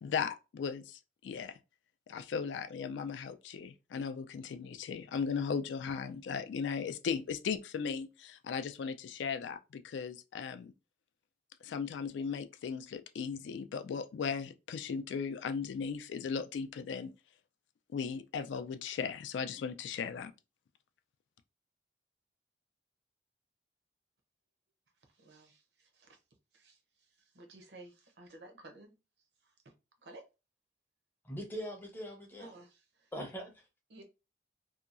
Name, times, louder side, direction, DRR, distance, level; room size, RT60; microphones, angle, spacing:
voice 1, 0.0-1.6 2.1-10.7 11.6-17.1 17.9-20.3, left 6 dB, 80° left, 0.3 m, -37 dB
voice 2, 25.0-26.2 26.5-29.7 30.0-30.3 32.4-33.1 33.9-34.0, right 2 dB, 70° right, 0.6 m, -55 dB
voice 3, 31.2-32.5 33.1-33.6, equal, 10° left, 0.5 m, -41 dB
2.7 x 2.3 x 2.4 m
head